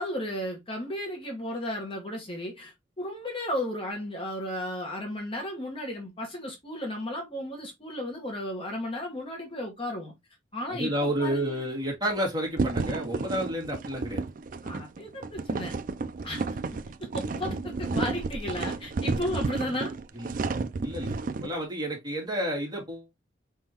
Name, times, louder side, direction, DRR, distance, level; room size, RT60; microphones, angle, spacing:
voice 1, 0.0-10.1 10.5-11.6 14.6-15.7 16.2-16.4 17.0-19.9, left 1 dB, 30° left, 1.4 m, -34 dB
voice 2, 10.7-14.3 20.1-20.3 20.8-23.1, equal, 20° right, 2.2 m, -30 dB
sound 1, 12.6-21.5, right 3 dB, 45° right, 0.4 m, -31 dB
4.9 x 3.7 x 2.9 m
head